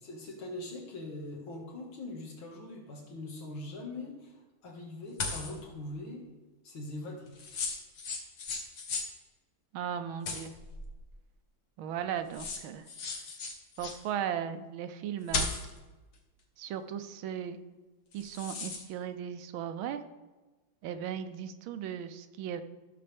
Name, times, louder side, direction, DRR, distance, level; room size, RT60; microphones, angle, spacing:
voice 1, 0.0-4.4 4.6-6.2 6.6-7.3, left 2 dB, 85° left, -1 dB, 2.6 m, -42 dB
sound 1, 5.2-5.6 7.4-9.1 10.3-11.0 12.0-12.1 12.3-14.0 15.3-15.8 18.1-18.8, left 4 dB, 55° left, 1.6 m, -36 dB
voice 2, 9.7-10.6 11.8-12.9 13.8-15.5 16.6-17.6 18.1-20.0 20.8-22.6, right 9 dB, 85° right, 10 dB, 1.4 m, -36 dB
15.0 x 6.7 x 3.4 m, 1.2 s
omnidirectional pair, 2.2 m